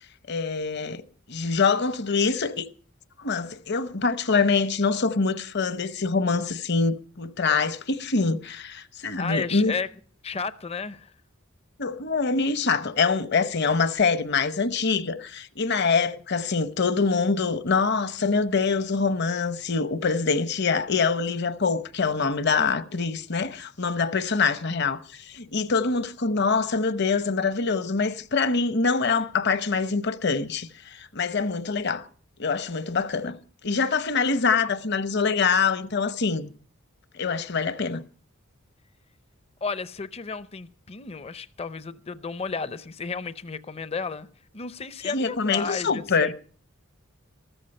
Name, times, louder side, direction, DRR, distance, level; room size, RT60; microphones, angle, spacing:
voice 1, 0.3-2.7 3.2-9.7 11.8-32.1 32.4-33.4 33.6-36.5 37.1-38.0 45.0-46.3, left 4 dB, 55° left, 0.9 m, -25 dB
voice 2, 9.2-9.9 10.2-11.1 39.6-44.3 44.5-46.3, left 4 dB, 30° left, 0.6 m, -33 dB
14.0 x 13.5 x 5.4 m
head